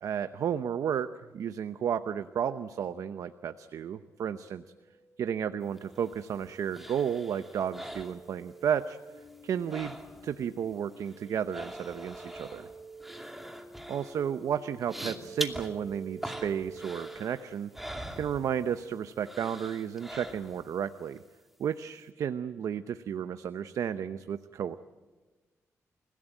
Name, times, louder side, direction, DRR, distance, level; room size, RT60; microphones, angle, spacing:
voice 1, 0.0-1.1 1.3-4.6 5.2-9.0 9.4-10.0 10.2-12.7 13.9-17.7 18.2-21.2 21.6-24.8, right 8 dB, 75° right, 11 dB, 0.8 m, -32 dB
sound 1, 3.9-17.1, right 3 dB, 20° right, 6.6 m, -50 dB
sound 2, 5.8-8.8 9.1-10.5 10.7-18.9 19.2-20.8 21.2-21.3, equal, 5° right, 2.6 m, -43 dB
29.5 x 16.5 x 9.1 m, 1.3 s
cardioid pair, 105°, 6 cm